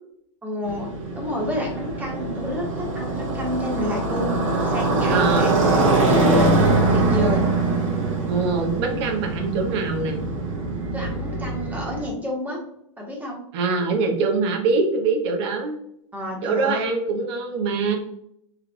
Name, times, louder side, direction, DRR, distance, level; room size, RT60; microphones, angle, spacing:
voice 1, 0.4-0.9 1.1-4.4 4.6-5.5 6.0-7.5 10.9-12.6 13.0-13.4 16.1-16.9, equal, 10° right, -2 dB, 1.3 m, -29 dB
Motorcycle, 0.6-12.1, right 2 dB, 90° right, 1.1 m, -23 dB
voice 2, 5.1-5.6 8.3-10.2 13.5-15.8 16.4-18.0, right 4 dB, 60° right, 2 dB, 1.0 m, -23 dB
3.5 x 3.3 x 2.2 m, 0.74 s
hypercardioid pair, 120°, 16 cm